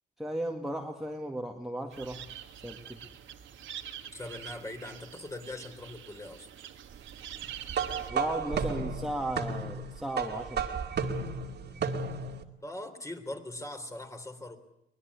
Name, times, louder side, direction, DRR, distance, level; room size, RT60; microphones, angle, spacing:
voice 1, 0.2-2.2 2.5-3.0 8.1-10.6, right 1 dB, ahead, 1 dB, 2.2 m, -35 dB
sound 1, 1.9-8.1, right 10 dB, 75° right, 2.1 m, -45 dB
voice 2, 4.1-6.5 11.6-11.9 12.6-14.6, left 1 dB, 15° left, 5 dB, 3.7 m, -41 dB
sound 2, 7.7-12.4, right 5 dB, 60° right, 2.3 m, -33 dB
24.0 x 19.5 x 8.5 m, 0.80 s
cardioid pair, 90°, 20 cm